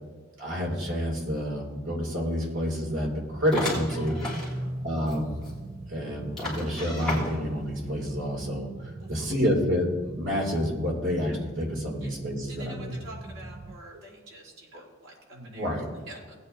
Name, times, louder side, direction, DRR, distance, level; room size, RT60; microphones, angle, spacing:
voice 1, 0.4-4.2 4.8-5.4 5.9-12.9 14.7-14.8 15.3-15.9, equal, 65° right, -1 dB, 2.7 m, -29 dB
sound 1, 3.0-13.8, right 1 dB, 25° right, 0.5 m, -40 dB
sound 2, 3.5-4.5 5.1-5.2 5.4-5.5 6.4-7.6, left 2 dB, 5° left, 3.2 m, -33 dB
voice 2, 4.4-4.7 9.0-9.3 12.0-12.1 12.5-15.8 16.1-16.4, right 2 dB, 85° right, -4 dB, 3.6 m, -47 dB
18.5 x 8.6 x 2.7 m, 1.4 s
head